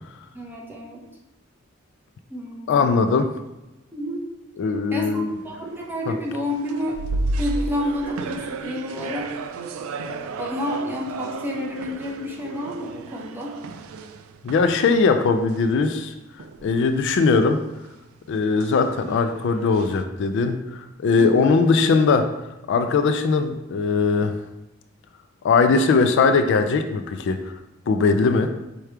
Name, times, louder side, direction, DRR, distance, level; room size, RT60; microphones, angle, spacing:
voice 1, 0.3-1.0 2.3-3.1 3.9-4.2 4.9-7.0 7.4-9.3 10.4-13.5 21.2-21.6, left 1 dB, 10° right, -3 dB, 0.7 m, -30 dB
voice 2, 2.7-3.3 4.6-5.3 14.4-16.1 16.6-17.6 18.3-22.3 22.7-24.3 25.4-27.4 27.9-28.5, left 4 dB, 60° left, 8 dB, 0.3 m, -20 dB
sound 1, 5.3-6.1 6.5-15.2 15.5-15.8 16.4-17.2 17.7-20.0, right 3 dB, 85° right, 0.3 m, -33 dB
4.9 x 2.3 x 4.4 m, 0.98 s
head